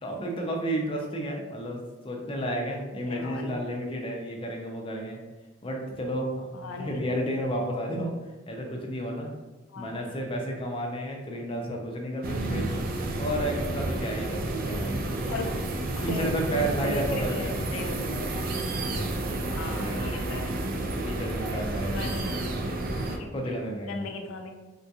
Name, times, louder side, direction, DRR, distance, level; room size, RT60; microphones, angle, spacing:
voice 1, 0.0-1.8 2.0-5.2 5.6-8.1 8.5-9.3 9.8-12.7 13.2-15.1 16.0-17.7 19.7-20.0 21.0-22.5 23.3-24.1, right 1 dB, 25° left, 1 dB, 0.4 m, -32 dB
voice 2, 3.1-3.6 6.5-7.2 9.7-10.2 15.3-15.5 16.0-16.3 16.6-18.0 19.0-19.1 19.5-20.6 21.9-22.5 23.1-23.6 23.8-24.5, left 3 dB, 80° left, 5 dB, 0.4 m, -38 dB
sound 1, 12.2-23.2, right 2 dB, 45° right, 0.3 m, -30 dB
3.6 x 2.3 x 2.7 m, 1.2 s
head